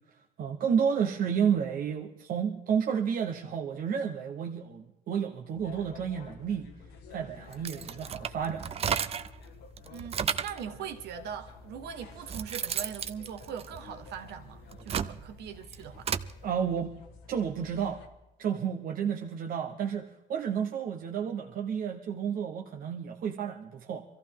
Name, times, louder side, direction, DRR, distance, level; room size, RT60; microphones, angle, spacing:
voice 1, 0.4-6.7 7.1-8.7 16.4-17.0 17.3-18.0 18.4-24.0, right 7 dB, 55° right, 1.1 m, -31 dB
sound 1, 5.5-18.1, left 5 dB, 90° left, 1.5 m, -51 dB
sound 2, 7.5-9.4 9.8-10.6 11.5-11.6 12.0-14.2 14.6-16.3, right 8 dB, 35° right, 0.6 m, -33 dB
voice 2, 9.9-16.1, right 8 dB, 75° right, 1.5 m, -41 dB
24.0 x 14.5 x 3.7 m
cardioid pair, 110°, 17 cm